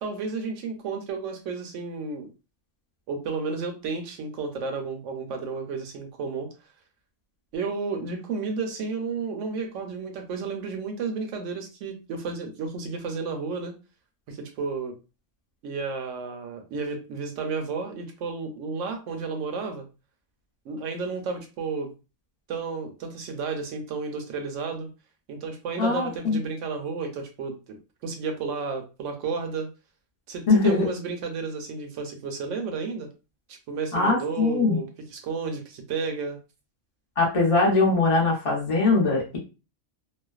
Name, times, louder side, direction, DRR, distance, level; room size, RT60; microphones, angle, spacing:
voice 1, 0.0-2.3 3.1-6.5 7.5-13.7 14.3-14.9 15.6-19.9 20.7-21.9 22.5-24.9 25.3-27.8 28.0-29.7 30.3-33.1 33.5-36.4, right 4 dB, 70° right, 4 dB, 0.8 m, -32 dB
voice 2, 25.8-26.4 30.5-30.9 33.9-34.8 37.2-39.4, left 3 dB, 40° left, -2 dB, 0.5 m, -21 dB
2.4 x 2.2 x 2.3 m, 0.31 s
omnidirectional pair, 1.5 m